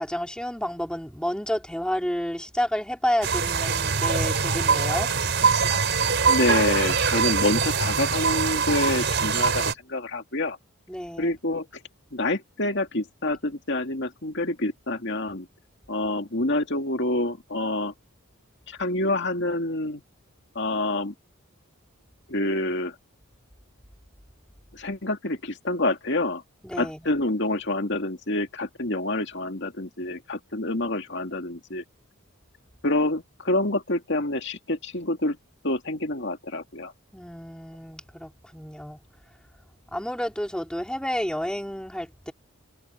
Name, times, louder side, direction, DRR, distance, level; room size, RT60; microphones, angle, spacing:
voice 1, 0.0-5.1 10.9-11.4 26.6-27.1 37.1-39.0 39.9-42.3, equal, 5° left, 4.0 m, -30 dB
sound 1, 3.2-9.7, right 5 dB, 55° right, 5.5 m, -23 dB
voice 2, 6.3-10.6 11.2-11.7 12.1-15.5 15.9-17.9 18.7-20.0 20.5-21.1 22.3-22.9 24.7-26.4 26.8-31.8 32.8-35.4 35.6-36.9, left 2 dB, 55° left, 2.4 m, -27 dB
head